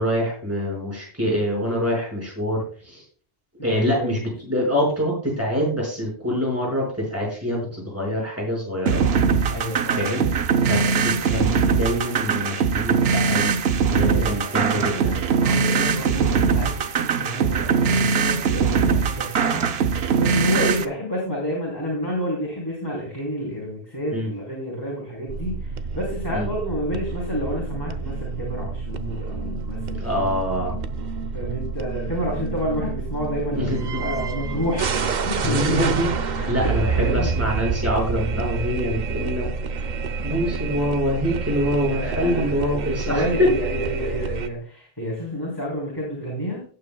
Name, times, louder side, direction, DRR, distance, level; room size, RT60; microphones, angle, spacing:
voice 1, 0.0-3.0 3.6-9.0 9.9-13.6 13.8-15.1 24.1-24.3 26.3-26.5 30.0-30.8 33.5-34.0 35.4-36.1 36.5-39.5 39.8-39.9 40.2-43.5, equal, 15° right, -3 dB, 5.3 m, -25 dB
voice 2, 3.6-4.1 9.5-10.1 14.1-30.1 31.3-34.9 35.2-35.9 36.4-37.3 41.9-42.7 43.1-46.6, equal, 20° left, -5 dB, 3.7 m, -29 dB
sound 1, 8.9-20.9, right 5 dB, 80° right, 1.0 m, -21 dB
sound 2, 25.3-44.5, right 5 dB, 50° right, 0.8 m, -28 dB
17.0 x 8.9 x 2.3 m, 0.42 s
omnidirectional pair, 1.1 m